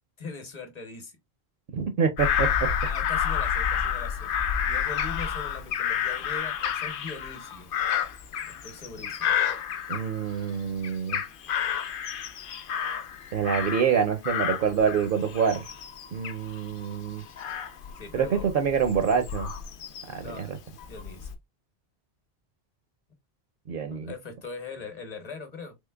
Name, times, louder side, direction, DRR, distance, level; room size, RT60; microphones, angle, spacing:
voice 1, 0.2-1.2 2.8-4.4 4.6-7.7 8.5-9.4 18.0-18.4 20.2-20.5 20.9-21.3 23.9-25.8, left 4 dB, 40° left, 1.0 m, -41 dB
voice 2, 1.7-2.5 9.9-11.2 13.3-15.7 16.1-17.2 18.1-19.5 20.1-20.6 23.7-24.1, right 7 dB, 65° right, 0.7 m, -26 dB
Bird vocalization bird call bird song / Crow, 2.2-10.5 10.8-14.0 14.2-20.3 20.8-21.3, left 8 dB, 65° left, 0.7 m, -30 dB
3.7 x 3.0 x 2.2 m
omnidirectional pair, 1.0 m